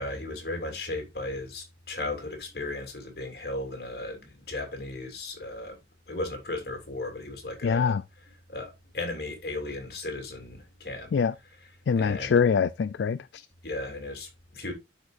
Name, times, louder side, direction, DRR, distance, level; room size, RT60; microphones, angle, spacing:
voice 1, 0.0-5.8 6.1-8.0 8.5-11.1 11.6-11.7 12.0-12.3 13.6-14.7, left 2 dB, 55° left, 2.9 m, -36 dB
voice 2, 7.6-8.0 11.1-11.3 11.9-13.4, left 6 dB, 75° left, 0.4 m, -24 dB
12.0 x 4.9 x 2.5 m
head